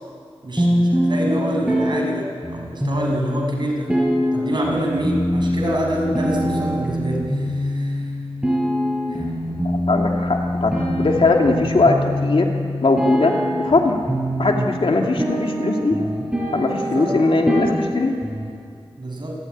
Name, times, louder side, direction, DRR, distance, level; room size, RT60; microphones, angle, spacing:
voice 1, 0.4-3.9 4.3-8.0 9.1-9.2 14.5-14.7 16.8-17.1 19.0-19.4, right 1 dB, 45° right, -1 dB, 6.4 m, -26 dB
sound 1, 0.6-18.5, equal, 10° right, 7.6 m, -24 dB
voice 2, 9.6-12.5 12.8-14.0 14.4-16.1 16.5-18.2, left 3 dB, 60° left, 2 dB, 2.7 m, -20 dB
28.0 x 14.5 x 9.6 m, 2.2 s
wide cardioid pair, 80°, 10 cm